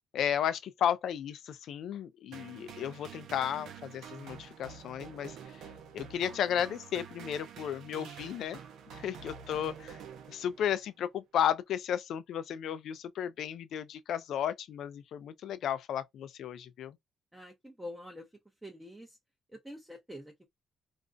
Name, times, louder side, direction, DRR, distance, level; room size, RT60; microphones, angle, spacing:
voice 1, 0.1-5.4 5.9-8.6 8.9-10.0 10.3-17.0, left 9 dB, 75° left, 0.4 m, -34 dB
sound 1, 2.3-10.8, right 7 dB, 80° right, 0.5 m, -48 dB
voice 2, 17.3-18.3 18.6-19.2 19.5-20.5, left 1 dB, 10° right, 0.6 m, -46 dB
2.4 x 2.1 x 2.5 m
cardioid pair, 90°, 0 cm